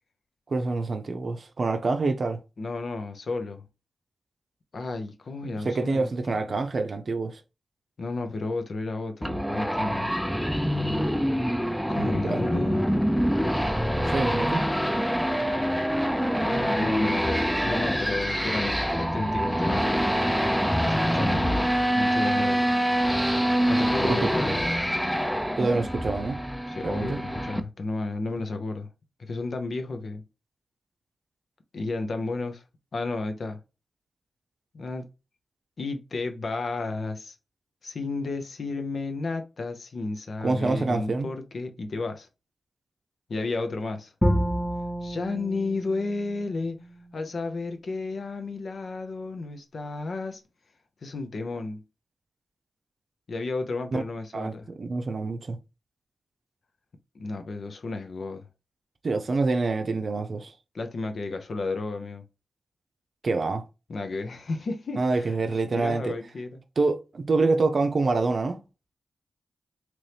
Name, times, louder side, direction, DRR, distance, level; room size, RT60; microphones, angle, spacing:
voice 1, 0.5-2.4 5.4-7.4 12.2-12.4 14.0-14.6 24.1-24.3 25.6-26.4 26.8-27.2 40.4-41.3 53.9-54.0 54.3-55.6 59.0-60.5 63.2-63.6 65.0-66.1 66.8-68.6, right 3 dB, 60° right, 0.5 m, -26 dB
voice 2, 2.6-3.7 4.7-6.4 8.0-10.1 11.9-12.9 16.4-20.1 20.8-21.7 22.0-22.6 23.7-24.6 26.7-28.9 29.2-30.2 31.7-32.6 32.9-33.6 34.7-35.1 35.8-37.4 37.8-42.3 43.3-44.1 45.0-46.8 47.1-50.4 51.0-51.8 53.3-54.7 57.1-58.5 60.7-62.2 63.9-66.6, left 3 dB, 65° left, 0.6 m, -32 dB
sound 1, 9.2-27.6, equal, ahead, 0.4 m, -25 dB
Bowed string instrument, 44.2-47.3, equal, 15° left, 0.9 m, -29 dB
3.0 x 2.7 x 3.3 m
supercardioid pair, 40°, 0 cm